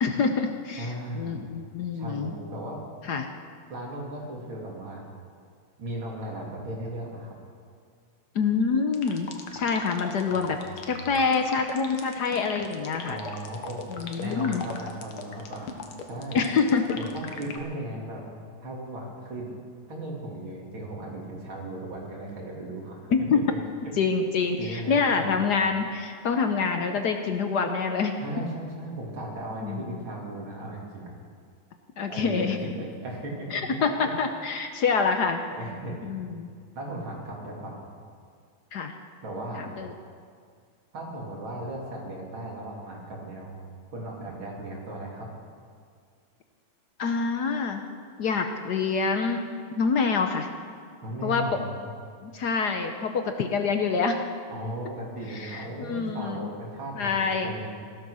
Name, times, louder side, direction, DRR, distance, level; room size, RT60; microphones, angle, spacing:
voice 1, 0.0-2.3 3.0-3.3 8.3-9.3 9.5-10.6 10.9-13.2 13.9-14.6 16.3-17.0 23.1-23.4 24.0-28.2 29.6-30.0 32.0-32.6 33.5-35.4 36.0-36.5 38.7-38.9 39.6-39.9 47.0-47.8 48.2-49.4 49.7-50.5 51.2-51.5 52.2-54.3 55.3-56.5 56.9-57.5, left 5 dB, 60° left, 6 dB, 1.3 m, -26 dB
voice 2, 0.8-1.5 1.9-2.8 3.7-5.0 5.8-7.4 10.3-10.6 13.0-13.8 14.1-15.7 16.1-16.4 17.0-18.2 18.6-19.5 19.9-23.0 24.6-25.4 28.2-31.1 32.1-34.1 35.5-36.2 36.7-37.8 39.2-39.7 40.9-43.6 43.9-45.3 51.0-51.9 54.5-57.7, right 1 dB, 70° right, -2 dB, 3.6 m, -36 dB
sound 1, 8.9-17.6, left 6 dB, 85° left, 2.1 m, -38 dB
15.5 x 12.5 x 6.3 m, 2.1 s
omnidirectional pair, 2.3 m